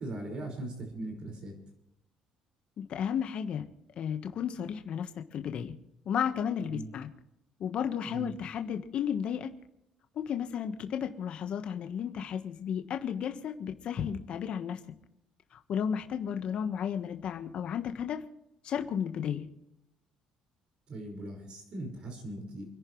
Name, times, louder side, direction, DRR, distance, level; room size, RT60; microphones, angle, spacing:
voice 1, 0.0-1.5 6.7-6.9 8.0-8.3 20.9-22.7, right 2 dB, 45° right, 4 dB, 5.3 m, -39 dB
voice 2, 2.8-3.7 4.0-5.8 6.0-7.1 7.6-9.5 10.1-14.8 15.5-18.2 18.6-19.5, left 8 dB, 50° left, 9 dB, 1.3 m, -33 dB
28.5 x 11.0 x 3.2 m, 0.86 s
cardioid pair, 140°, 2 cm